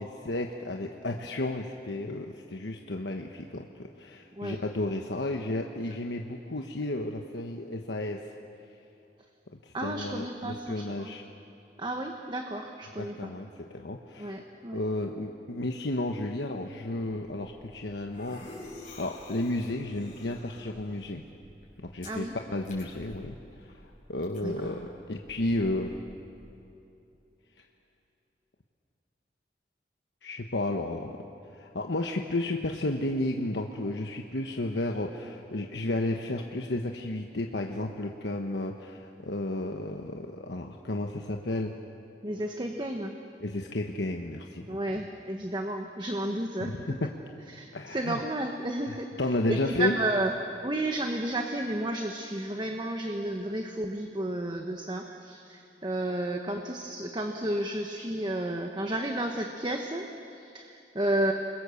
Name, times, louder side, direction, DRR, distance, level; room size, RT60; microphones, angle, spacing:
voice 1, 0.0-8.2 9.6-11.2 13.0-13.5 13.7-14.4 14.7-21.2 21.8-23.4 24.1-24.8 25.1-25.9 30.2-31.2 31.5-41.7 43.4-45.0 46.6-47.1 47.7-48.2 49.2-50.0, left 2 dB, 85° left, 3 dB, 1.2 m, -32 dB
voice 2, 9.7-11.1 11.8-13.3 14.2-14.8 22.0-22.3 24.4-24.7 42.2-43.1 44.7-47.0 47.5-49.1 49.5-50.3 50.6-61.3, right 1 dB, 25° right, 3 dB, 1.2 m, -32 dB
sound 1, 17.0-26.5, left 2 dB, 45° left, 5.9 m, -50 dB
29.5 x 22.0 x 7.1 m, 2.8 s
head